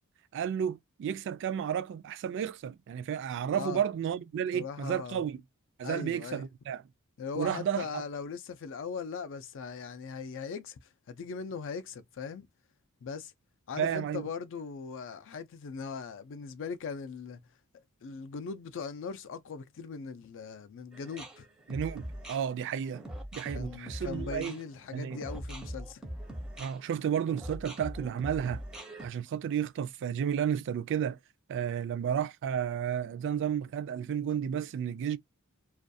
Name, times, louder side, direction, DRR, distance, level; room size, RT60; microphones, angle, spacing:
voice 1, 0.3-5.4 5.8-6.8 7.4-8.0 13.8-14.2 21.7-23.0 23.3-24.5 24.9-25.2 26.6-28.6 29.0-31.2 31.5-35.2, right 8 dB, 55° right, 0.3 m, -32 dB
voice 2, 4.5-5.2 5.8-6.4 7.2-10.8 11.1-12.5 13.0-13.3 13.7-17.4 18.0-21.5 23.5-26.0, left 5 dB, 60° left, 0.4 m, -39 dB
sound 1, 20.9-29.1, equal, 5° right, 0.5 m, -41 dB
2.4 x 2.2 x 2.6 m
head